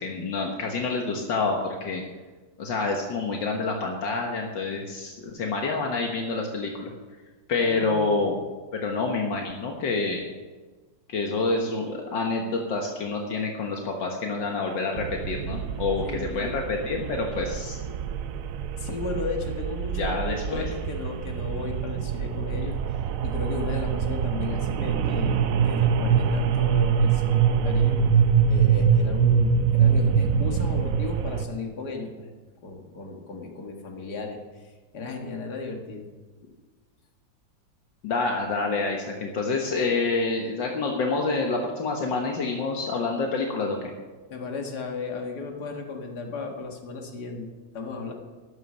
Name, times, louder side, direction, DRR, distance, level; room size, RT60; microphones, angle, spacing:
voice 1, 0.0-2.0 2.6-6.9 7.5-8.3 8.7-10.2 11.1-17.8 20.0-20.6 38.0-43.9, left 3 dB, 75° left, 1 dB, 2.0 m, -27 dB
voice 2, 7.7-8.3 16.0-16.6 18.8-32.3 32.6-36.1 44.3-47.5 47.7-48.1, left 4 dB, 60° left, 2 dB, 2.3 m, -35 dB
sound 1, 15.0-31.5, right 7 dB, 65° right, 0.8 m, -24 dB
12.5 x 11.0 x 6.3 m, 1.3 s
omnidirectional pair, 2.0 m